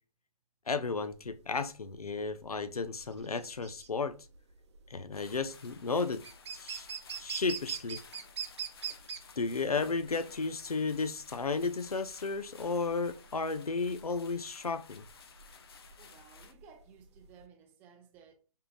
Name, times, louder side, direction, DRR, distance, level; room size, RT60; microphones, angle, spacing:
voice 1, 0.7-4.2 4.9-6.2 6.5-8.0 9.4-15.0, left 4 dB, 85° left, 0.5 m, -33 dB
sound 1, 1.1-17.4, right 7 dB, 50° right, 0.6 m, -43 dB
sound 2, 5.1-16.5, left 6 dB, 45° left, 0.6 m, -56 dB
voice 2, 16.0-18.3, right 6 dB, 10° right, 0.4 m, -57 dB
5.5 x 3.6 x 2.4 m
figure-of-eight pair, 140°, 18 cm